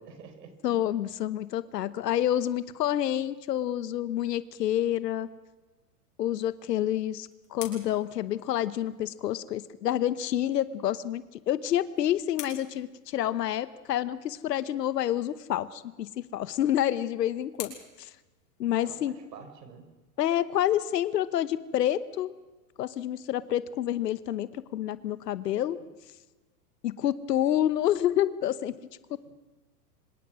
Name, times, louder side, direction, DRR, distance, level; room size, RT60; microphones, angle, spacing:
voice 1, 0.0-0.9 18.8-19.9 29.1-29.2, right 5 dB, 80° right, 8 dB, 5.1 m, -48 dB
voice 2, 0.6-5.3 6.2-18.1 18.6-19.2 20.2-22.3 22.8-25.8 26.8-28.8, left 11 dB, 90° left, 15 dB, 1.1 m, -28 dB
sound 1, 6.7-9.2 11.3-13.7 15.9-19.1, left 10 dB, 70° left, 6.1 m, -48 dB
25.5 x 21.5 x 6.2 m, 1.2 s
hypercardioid pair, 140°, 48 cm